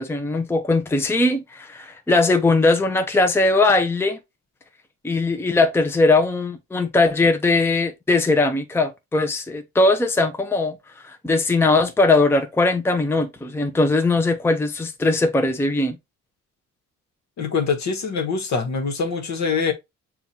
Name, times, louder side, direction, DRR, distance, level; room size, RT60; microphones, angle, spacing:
voice 1, 0.0-4.2 5.0-10.8 11.0-16.0, left 2 dB, 10° left, 0.5 m, -20 dB
voice 2, 17.4-19.7, left 5 dB, 65° left, 1.1 m, -24 dB
6.9 x 2.4 x 2.7 m
cardioid pair, 90°, 30 cm